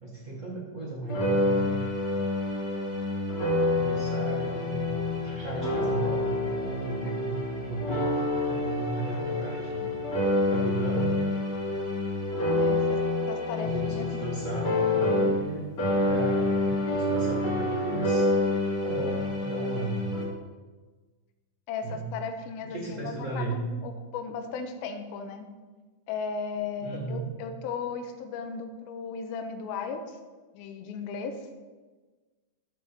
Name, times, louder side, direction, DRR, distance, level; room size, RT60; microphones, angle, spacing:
voice 1, 0.0-1.8 3.7-4.8 5.2-8.2 8.4-10.0 10.5-11.2 12.6-12.9 13.6-15.6 16.0-18.3 18.8-20.0 21.8-22.1 22.7-23.6 26.8-27.3, right 2 dB, 40° right, -3 dB, 1.0 m, -35 dB
sound 1, 1.1-15.5 15.8-20.2, left 2 dB, 30° left, 3.6 m, -27 dB
voice 2, 12.4-13.0 13.3-14.1 21.7-25.5 26.1-30.2 30.5-31.4, left 5 dB, 75° left, 6 dB, 2.7 m, -36 dB
13.5 x 8.4 x 5.1 m, 1.3 s
omnidirectional pair, 4.5 m